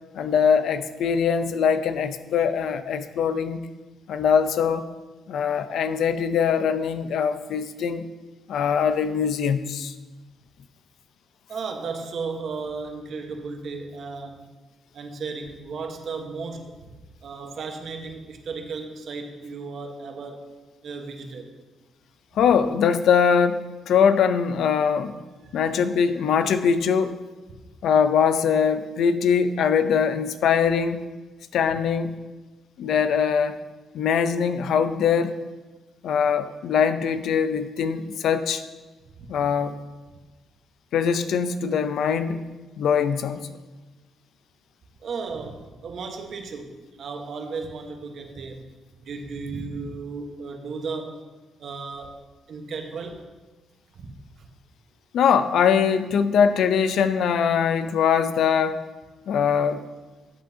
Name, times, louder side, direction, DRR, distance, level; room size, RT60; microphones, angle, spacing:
voice 1, 0.1-3.7 4.1-4.9 5.3-8.1 8.5-9.9 22.4-25.1 25.5-27.1 27.8-31.1 31.5-32.2 32.8-33.6 33.9-35.4 36.0-38.6 39.3-39.8 40.9-42.5 42.8-43.5 55.1-58.8 59.3-59.8, left 7 dB, 75° left, 11 dB, 0.5 m, -22 dB
voice 2, 11.5-14.5 14.9-16.8 17.2-20.5 20.8-21.5 25.4-25.6 27.5-27.6 39.2-39.3 45.0-48.6 49.0-51.2 51.6-52.2 52.5-53.3 53.9-54.5, right 4 dB, 65° right, 4 dB, 1.2 m, -35 dB
13.5 x 7.7 x 2.8 m, 1.2 s
cardioid pair, 85°, 0 cm